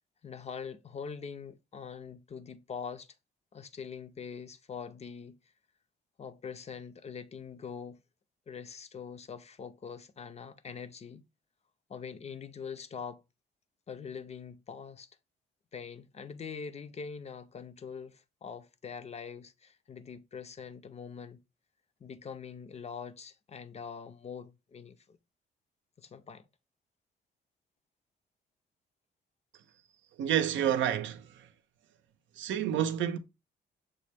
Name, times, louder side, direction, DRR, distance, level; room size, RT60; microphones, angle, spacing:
voice 1, 0.2-3.1 3.5-5.4 6.2-8.0 8.5-11.2 11.9-13.2 13.9-15.1 15.7-21.4 22.0-25.2 26.0-26.5, left 6 dB, 35° left, 0.4 m, -43 dB
voice 2, 30.2-31.5 32.4-33.2, right 10 dB, 75° right, 0.5 m, -29 dB
6.1 x 2.2 x 3.3 m
cardioid pair, 90°, 20 cm